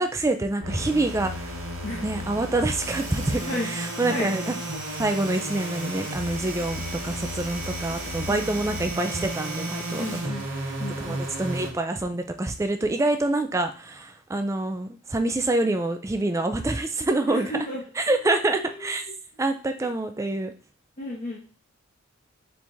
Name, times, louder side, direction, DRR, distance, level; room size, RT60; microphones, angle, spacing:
voice 1, 0.0-1.6 2.0-4.5 5.0-10.0 10.6-10.7 11.0-17.5 18.0-19.1 19.4-20.5, right 2 dB, 15° right, 7 dB, 0.3 m, -26 dB
sound 1, 0.6-11.7, equal, 70° right, 1.1 m, -34 dB
Domestic sounds home sounds, 2.6-10.5, right 3 dB, 40° right, 1.1 m, -38 dB
voice 2, 10.0-10.5 10.8-11.2 17.3-17.9 18.6-19.1 19.8-19.9 21.0-21.4, left 1 dB, 35° left, -4 dB, 0.8 m, -33 dB
4.5 x 3.5 x 2.6 m, 0.38 s
head